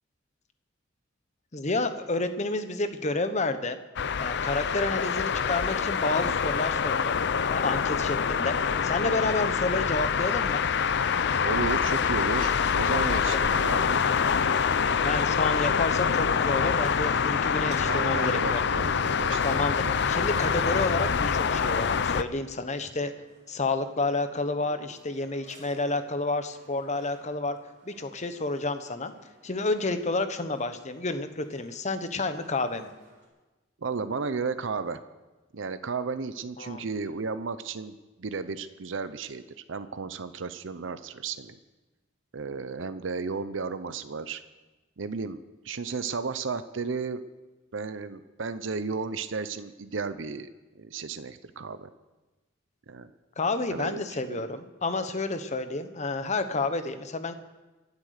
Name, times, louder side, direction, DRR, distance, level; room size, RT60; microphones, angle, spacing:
voice 1, 1.5-3.8 4.2-7.1 7.5-8.5 8.8-10.6 12.9-13.3 15.0-18.6 19.4-19.8 20.1-23.1 23.5-27.6 27.9-29.1 29.4-32.9 36.6-36.8 53.4-57.3, left 3 dB, 35° left, 9 dB, 1.0 m, -30 dB
sound 1, 4.0-22.2, left 6 dB, 60° left, 0.6 m, -26 dB
voice 2, 11.4-14.0 17.9-19.9 33.8-35.0 35.5-39.4 39.7-41.6 42.3-44.4 45.0-45.4 45.6-47.2 47.7-50.5 50.7-51.9 52.9-53.1 53.7-54.5, right 4 dB, 75° right, 12 dB, 0.7 m, -33 dB
sound 2, 16.7-33.3, right 2 dB, 40° right, 5.1 m, -56 dB
24.5 x 8.3 x 6.6 m, 1.2 s
head